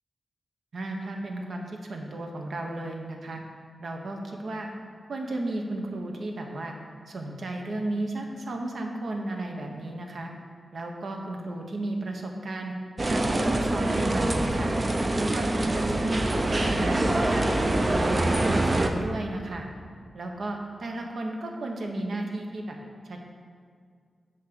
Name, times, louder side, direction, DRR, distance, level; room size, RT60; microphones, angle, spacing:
voice 1, 0.7-3.4 3.8-4.7 5.1-6.7 7.1-10.3 10.7-12.7 13.1-14.7 15.1-17.8 18.1-19.7 20.1-22.8 23.0-23.2, right 2 dB, 65° right, 2 dB, 1.0 m, -34 dB
sound 1, 13.0-18.9, right 1 dB, 30° right, 0.6 m, -25 dB
10.0 x 3.6 x 6.9 m, 2.1 s
wide cardioid pair, 140°, 0 cm